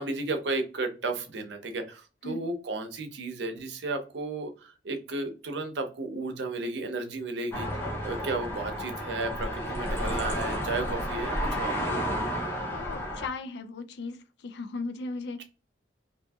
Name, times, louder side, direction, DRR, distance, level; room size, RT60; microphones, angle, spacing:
voice 1, 0.0-7.7 8.0-11.7, right 3 dB, 70° right, 0.5 m, -33 dB
sound 1, 7.5-13.3, equal, 10° left, 0.6 m, -31 dB
voice 2, 12.7-15.4, left 3 dB, 65° left, 0.4 m, -37 dB
2.6 x 2.6 x 2.2 m
head